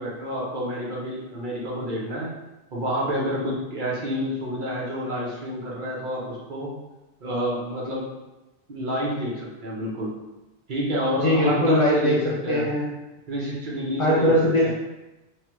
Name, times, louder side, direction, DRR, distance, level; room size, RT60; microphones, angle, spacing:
voice 1, 0.0-2.3 2.7-6.7 7.2-8.1 8.7-10.1 10.7-12.7 13.3-14.3 14.6-14.7, equal, 50° right, -5 dB, 0.8 m, -29 dB
voice 2, 11.2-12.1 12.5-12.9 14.0-14.7, equal, 50° left, -5 dB, 0.4 m, -20 dB
3.2 x 2.2 x 2.9 m, 1.0 s
omnidirectional pair, 1.1 m